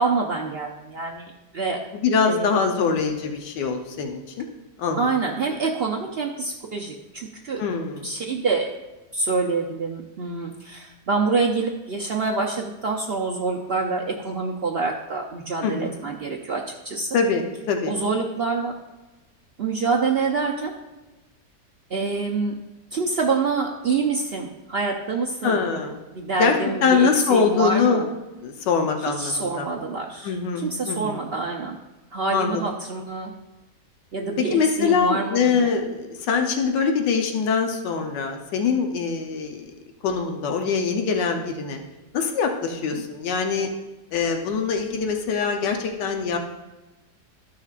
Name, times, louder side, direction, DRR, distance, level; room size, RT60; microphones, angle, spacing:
voice 1, 0.0-1.8 2.3-2.9 5.0-7.6 8.0-8.7 9.1-17.1 17.9-18.7 19.6-20.7 21.9-22.6 22.9-25.6 26.1-28.1 29.1-31.8 32.1-33.3 34.1-35.7 42.9-43.0, right 4 dB, 70° right, 0 dB, 0.5 m, -26 dB
voice 2, 1.9-4.4 4.8-5.1 7.6-8.1 15.6-15.9 17.1-17.9 25.4-26.0 26.4-26.6 26.8-28.0 28.4-29.7 30.2-31.2 32.3-32.6 34.5-39.6 40.0-41.8 42.1-43.7 44.1-46.4, left 5 dB, 85° left, 4 dB, 1.5 m, -23 dB
13.5 x 6.0 x 2.4 m, 1.1 s
omnidirectional pair, 1.8 m